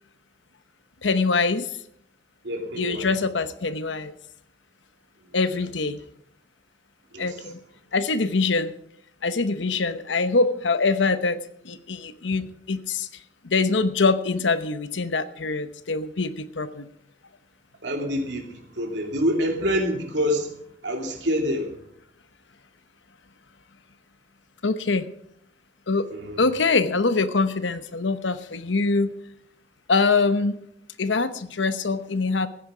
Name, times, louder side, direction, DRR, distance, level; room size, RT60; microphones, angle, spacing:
voice 1, 1.0-1.7 2.8-4.1 5.3-6.0 7.2-7.6 7.9-8.7 9.2-11.4 11.6-13.1 13.4-16.9 24.6-25.1 25.9-26.1 26.4-29.2 29.9-30.6 31.0-32.5, left 3 dB, 90° left, 12 dB, 0.9 m, -24 dB
voice 2, 2.4-3.1 7.1-7.5 17.8-20.6 20.8-21.7 26.1-26.5, equal, 70° right, 2 dB, 2.7 m, -27 dB
15.5 x 9.7 x 5.0 m, 0.70 s
head